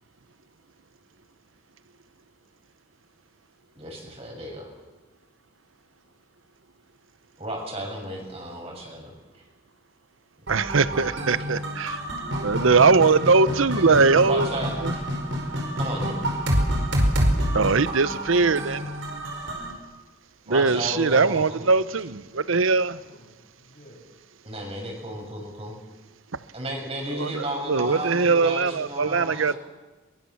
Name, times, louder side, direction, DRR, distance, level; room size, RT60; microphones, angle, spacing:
voice 1, 3.7-4.7 7.4-9.4 11.0-11.1 13.7-15.0 15.8-16.2 20.5-21.6 24.4-25.8 26.5-29.6, right 1 dB, 30° right, 6.1 m, -33 dB
sound 1, 10.5-19.7, equal, 70° right, 4.9 m, -27 dB
voice 2, 10.5-12.0 12.4-14.5 14.8-14.9 17.5-18.9 20.5-23.0 27.2-27.4 27.7-29.5, right 4 dB, 90° right, 0.8 m, -21 dB
voice 3, 23.0-24.0 29.3-29.6, left 1 dB, 45° left, 6.6 m, -52 dB
23.0 x 22.5 x 7.2 m
head